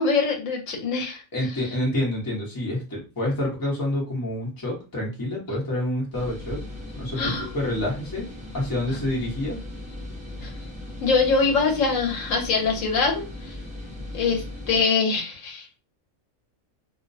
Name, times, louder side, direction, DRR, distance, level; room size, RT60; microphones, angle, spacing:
voice 1, 0.0-1.2 7.2-7.5 10.4-10.5 11.0-13.5 14.1-15.7, left 4 dB, 75° left, 1 dB, 1.0 m, -23 dB
voice 2, 1.3-8.3 8.5-9.6, left 1 dB, 20° left, -3 dB, 0.8 m, -28 dB
sound 1, 6.1-14.8, left 1 dB, 10° right, 0.6 m, -38 dB
2.5 x 2.1 x 2.5 m, 0.31 s
omnidirectional pair, 1.4 m